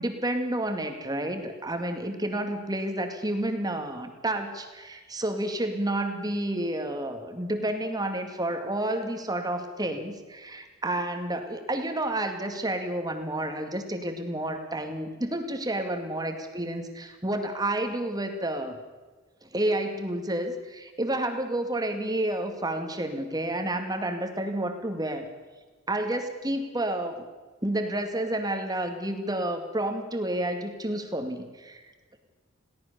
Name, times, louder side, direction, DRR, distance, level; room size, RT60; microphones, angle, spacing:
voice 1, 0.0-18.8 19.4-25.2 25.9-27.2 27.6-31.8, right 1 dB, 20° right, 6 dB, 2.2 m, -30 dB
22.0 x 17.5 x 6.8 m, 1.3 s
head